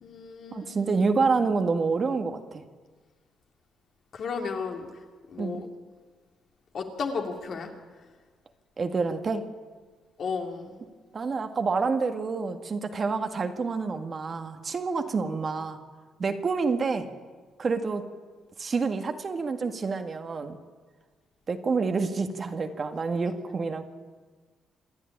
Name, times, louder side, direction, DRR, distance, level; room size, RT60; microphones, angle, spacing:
voice 1, 0.0-0.9 4.1-4.9 5.3-5.7 6.7-7.7 10.2-10.7, left 5 dB, 60° left, 3 dB, 3.0 m, -33 dB
voice 2, 0.5-2.6 5.4-5.6 8.8-9.5 11.1-15.8 16.2-17.1 17.6-18.1 18.6-20.6 21.5-23.8, right 4 dB, 40° right, 7 dB, 1.8 m, -28 dB
27.0 x 10.0 x 10.0 m, 1.5 s
cardioid pair, 90°, 0 cm